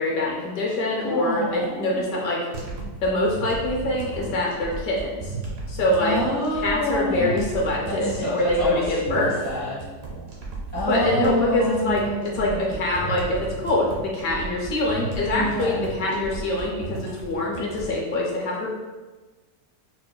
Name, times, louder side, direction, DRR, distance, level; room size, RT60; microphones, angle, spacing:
voice 1, 0.0-2.5 3.0-5.3 5.7-6.2 6.6-9.4 10.8-18.7, left 1 dB, 70° left, -3 dB, 1.0 m, -24 dB
voice 2, 1.0-2.0 6.0-7.4 7.9-9.8 10.7-12.7 15.3-15.8, left 1 dB, 25° right, -8 dB, 0.5 m, -27 dB
sound 1, 2.5-18.0, right 3 dB, 65° right, 1.1 m, -35 dB
4.6 x 2.0 x 2.2 m, 1.3 s
omnidirectional pair, 1.7 m